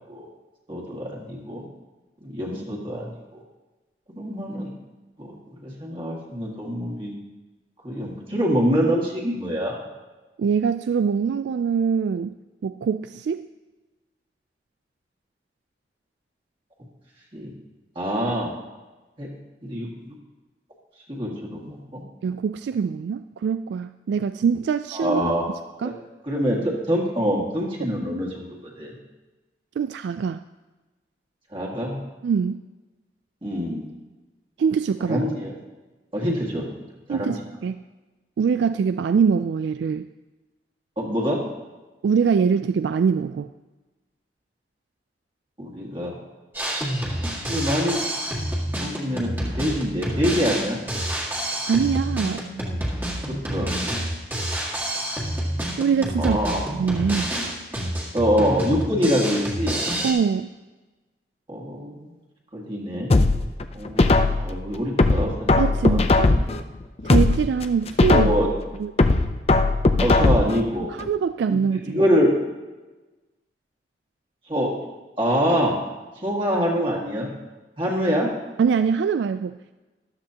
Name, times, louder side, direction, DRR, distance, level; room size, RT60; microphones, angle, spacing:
voice 1, 0.7-1.7 2.2-3.4 4.2-4.7 5.2-5.3 5.6-7.1 7.8-9.8 17.3-17.5 18.0-18.5 19.2-19.3 19.6-19.9 21.1-22.0 24.9-25.4 25.8-25.9 26.3-28.9 31.5-32.0 33.4-33.9 35.1-35.5 36.1-36.7 37.1-37.3 41.0-41.4 45.6-46.2 47.5-48.0 48.8-50.8 53.3-53.7 56.2-56.6 58.1-59.8 61.5-62.1 62.5-63.1 63.7-66.0 68.0-68.5 70.0-70.9 71.5-71.6 71.9-72.4 74.5-74.7 75.2-75.7 76.2-77.3 77.8-78.3, equal, 30° right, -3 dB, 2.0 m, -25 dB
voice 2, 10.4-12.4 12.6-13.5 22.2-25.2 25.8-26.0 29.8-30.4 32.2-32.6 34.6-35.2 37.1-37.8 38.4-40.1 42.0-43.5 51.7-52.4 55.8-56.4 56.7-57.3 60.0-60.5 65.6-66.3 67.0-68.3 68.8-68.9 70.9-72.0 78.6-79.7, right 6 dB, 80° right, 11 dB, 0.3 m, -23 dB
Drum kit, 46.5-60.1, right 1 dB, 10° right, 1.8 m, -28 dB
sound 1, 63.1-64.5 65.0-66.6 67.0-68.5 69.0-70.6 71.0-71.1, left 2 dB, 35° left, 0.5 m, -19 dB
13.5 x 12.0 x 2.9 m, 1.2 s
head